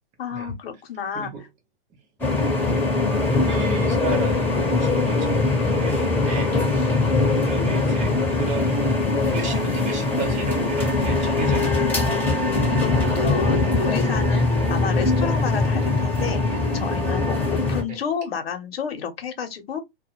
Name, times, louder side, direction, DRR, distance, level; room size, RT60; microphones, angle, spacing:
voice 1, 0.2-1.3 12.7-12.9 13.2-19.8, left 6 dB, 75° left, 1.0 m, -30 dB
voice 2, 1.1-1.5 2.4-6.5 7.4-8.8 9.3-11.9 17.9-18.0, right 4 dB, 25° right, 0.7 m, -33 dB
sound 1, 2.2-17.8, left 3 dB, 5° left, 1.0 m, -22 dB
2.4 x 2.2 x 2.9 m
hypercardioid pair, 130°, 30 cm